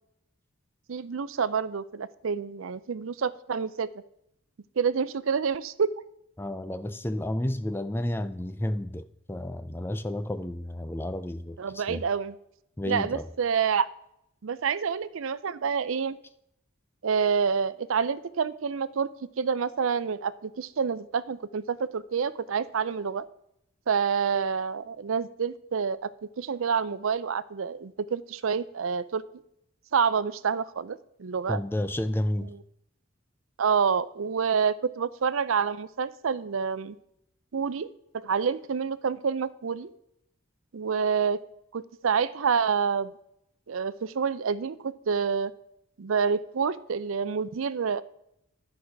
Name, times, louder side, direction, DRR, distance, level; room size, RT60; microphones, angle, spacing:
voice 1, 0.9-3.9 4.8-5.9 11.6-12.3 12.9-13.9 14.4-16.2 17.0-23.2 23.9-26.1 26.4-29.2 29.9-31.6 32.5-32.6 33.6-37.0 37.5-39.9 40.7-41.4 41.7-43.1 43.7-45.5 46.0-48.0, right 6 dB, 75° right, 0.5 m, -28 dB
voice 2, 6.4-12.0 12.8-13.3 31.5-32.5, left 1 dB, 10° left, 0.4 m, -31 dB
11.0 x 4.9 x 5.8 m
head